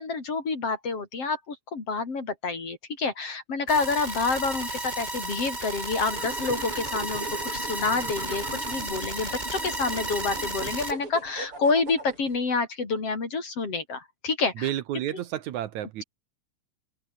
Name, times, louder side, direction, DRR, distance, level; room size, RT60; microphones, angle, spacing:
voice 1, 0.0-14.7, left 4 dB, 45° left, 5.3 m, -28 dB
sound 1, 3.7-10.9, right 1 dB, 10° right, 4.6 m, -33 dB
sound 2, 6.1-12.4, right 2 dB, 40° right, 9.0 m, -40 dB
voice 2, 14.6-16.0, right 12 dB, 70° right, 2.3 m, -31 dB
omnidirectional pair, 3.6 m